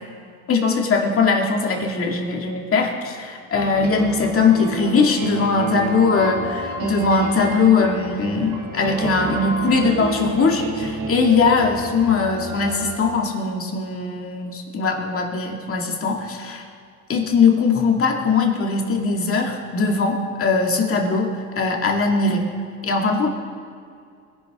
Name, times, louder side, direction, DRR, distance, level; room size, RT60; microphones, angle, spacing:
voice 1, 0.5-16.6 17.1-21.3 21.6-22.5 22.8-23.3, left 4 dB, 40° left, 1 dB, 2.2 m, -20 dB
sound 1, 3.5-13.0, right 2 dB, 80° right, 2.2 m, -30 dB
21.5 x 11.0 x 3.6 m, 2.3 s
cardioid pair, 115°, 33 cm